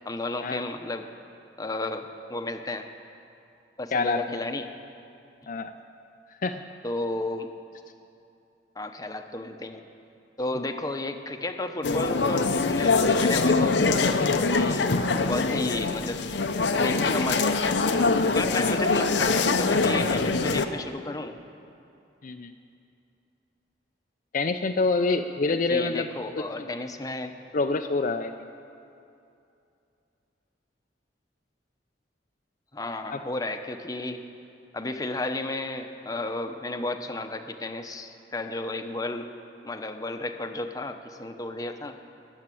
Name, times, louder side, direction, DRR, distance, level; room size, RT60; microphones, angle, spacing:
voice 1, 0.0-1.1 1.6-2.9 3.8-4.7 6.8-7.5 8.8-9.8 10.4-14.9 15.2-16.2 16.8-17.8 18.3-21.4 25.5-27.3 32.7-34.2 34.7-39.3 39.6-42.0, left 2 dB, 20° left, 6 dB, 0.9 m, -33 dB
voice 2, 3.9-4.4 5.5-5.7 6.4-6.6 18.5-18.8 22.2-22.5 24.3-26.1 26.4-26.7 27.5-28.5 33.1-33.2, left 3 dB, 50° left, 5 dB, 0.5 m, -27 dB
sound 1, 11.8-20.7, left 3 dB, 80° left, 0.8 m, -23 dB
21.0 x 7.4 x 9.2 m, 2.7 s
head